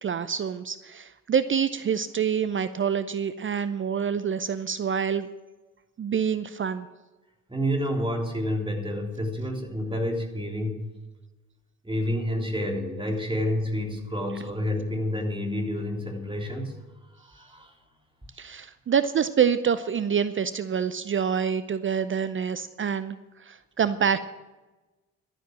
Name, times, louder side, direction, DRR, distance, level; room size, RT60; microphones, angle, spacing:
voice 1, 0.0-5.3 6.0-6.9 18.4-24.2, right 7 dB, 30° right, 13 dB, 0.6 m, -26 dB
voice 2, 7.5-10.9 11.8-16.8 17.2-17.7, equal, 10° right, 1 dB, 3.6 m, -29 dB
12.0 x 11.0 x 7.6 m, 1.1 s
figure-of-eight pair, 40°, 42 cm